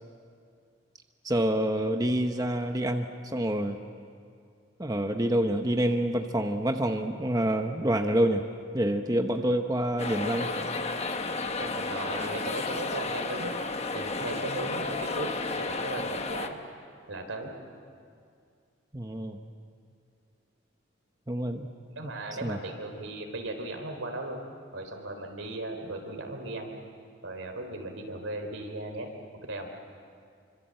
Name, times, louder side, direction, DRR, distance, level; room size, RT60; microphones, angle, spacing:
voice 1, 1.2-3.1 3.3-3.8 4.8-8.4 8.7-10.5 18.9-19.4 21.3-21.7 22.4-22.6, right 1 dB, 20° right, 5 dB, 0.9 m, -27 dB
sound 1, 10.0-16.5, left 3 dB, 30° left, 1.3 m, -32 dB
voice 2, 11.6-13.5 13.9-16.6 17.1-17.5 21.9-24.4 24.7-26.7 27.2-29.1 29.5-29.7, right 1 dB, 85° right, 4 dB, 4.0 m, -37 dB
26.5 x 25.5 x 7.8 m, 2.3 s
head